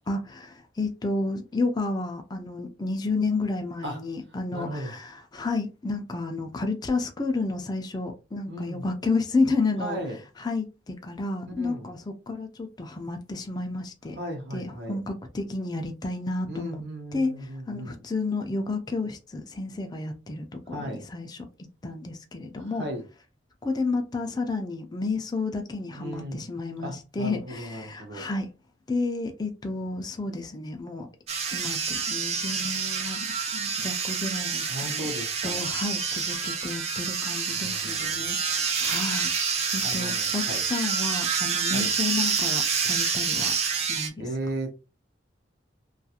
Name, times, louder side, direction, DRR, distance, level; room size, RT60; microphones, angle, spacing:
voice 1, 0.1-10.0 10.4-14.2 14.5-16.8 17.1-21.5 21.8-22.8 23.6-28.5 28.9-31.1 31.5-33.3 33.5-35.1 35.4-39.3 39.7-44.3, left 3 dB, 20° left, 0.4 m, -31 dB
voice 2, 4.5-5.0 8.5-8.9 9.8-10.2 11.6-11.9 14.2-15.0 16.5-18.0 20.7-21.0 22.8-23.0 25.9-26.5 26.8-28.3 34.7-35.7 37.6-38.3 39.8-40.6 41.7-41.9 44.2-44.7, right 1 dB, 65° right, 0.8 m, -36 dB
sound 1, 31.3-44.1, right 6 dB, 35° right, 0.5 m, -28 dB
2.4 x 2.3 x 2.8 m
head